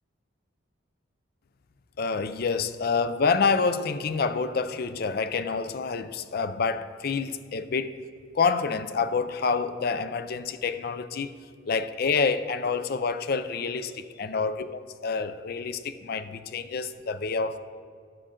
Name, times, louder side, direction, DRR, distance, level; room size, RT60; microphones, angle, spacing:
voice 1, 2.0-8.1 8.3-11.3 11.7-17.6, left 5 dB, 50° left, 0.4 m, -27 dB
14.5 x 6.3 x 3.8 m
head